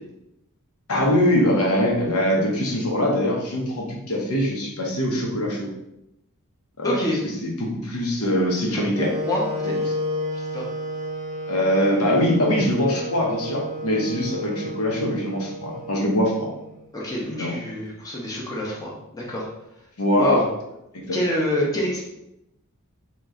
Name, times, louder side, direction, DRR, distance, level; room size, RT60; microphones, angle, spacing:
voice 1, 0.9-5.7 6.8-7.0 7.4-9.1 11.5-16.5 17.3-17.5 20.0-20.4 20.9-21.2, left 1 dB, 80° left, -1 dB, 1.0 m, -22 dB
voice 2, 6.8-7.2 8.7-8.9 9.2-9.7 10.3-10.7 16.9-19.5 20.2-20.4 21.1-22.0, left 1 dB, 15° left, -4 dB, 0.7 m, -26 dB
Wind instrument woodwind instrument, 8.9-16.9, equal, 35° right, 0.6 m, -32 dB
3.0 x 2.9 x 3.7 m, 0.86 s
head